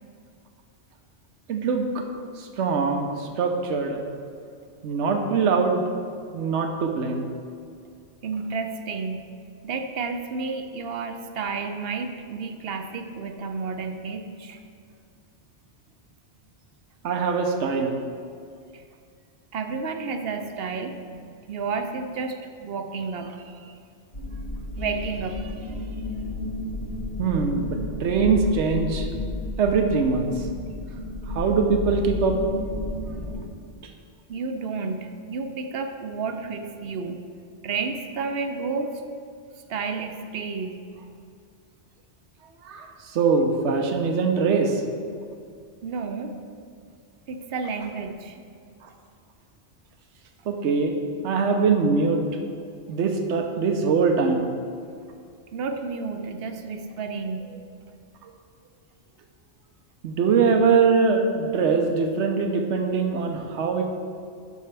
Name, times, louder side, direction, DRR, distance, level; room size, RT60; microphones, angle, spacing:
voice 1, 1.5-2.0 2.4-4.0 4.8-5.8 6.3-7.3 17.0-18.0 27.2-29.1 29.6-30.3 31.3-32.4 42.6-44.8 48.8-48.9 50.5-50.9 51.2-52.2 52.9-54.5 60.0-63.8, right 5 dB, 80° right, 4 dB, 1.0 m, -22 dB
voice 2, 8.2-9.3 9.6-14.6 18.7-18.8 19.5-23.8 24.8-25.9 34.3-37.3 37.6-39.0 39.7-40.9 45.8-46.4 47.3-48.4 55.5-57.5, right 4 dB, 65° right, 6 dB, 0.8 m, -31 dB
sound 1, 24.1-33.5, left 2 dB, 75° left, 2.0 m, -32 dB
11.5 x 5.6 x 3.3 m, 2.3 s
omnidirectional pair, 1.2 m